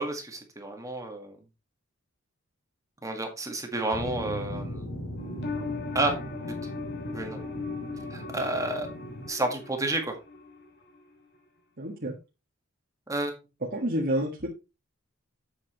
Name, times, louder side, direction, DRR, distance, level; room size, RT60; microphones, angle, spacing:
voice 1, 0.0-1.4 3.0-4.8 5.9-6.2 6.6-6.7 7.1-7.4 8.1-8.9 9.3-10.1 13.1-13.3, right 2 dB, 15° right, 4 dB, 1.7 m, -30 dB
sound 1, 3.9-9.3, equal, 70° left, 3.4 m, -38 dB
sound 2, 5.2-10.7 10.9-11.0, left 4 dB, 50° left, 3.1 m, -38 dB
voice 2, 11.8-12.2 13.7-14.5, equal, 45° right, -3 dB, 1.7 m, -29 dB
8.2 x 8.1 x 3.0 m, 0.27 s
head